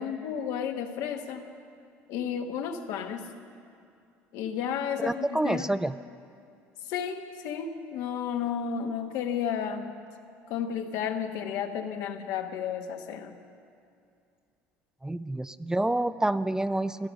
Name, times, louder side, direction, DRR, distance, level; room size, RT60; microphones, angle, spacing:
voice 1, 0.0-1.5 2.1-3.3 4.3-5.7 6.9-9.9 10.5-13.4, left 8 dB, 70° left, 5 dB, 1.1 m, -32 dB
voice 2, 5.0-5.9 15.0-17.1, right 1 dB, 10° right, 13 dB, 0.4 m, -28 dB
16.5 x 11.5 x 6.3 m, 2.4 s
supercardioid pair, 75°, 6 cm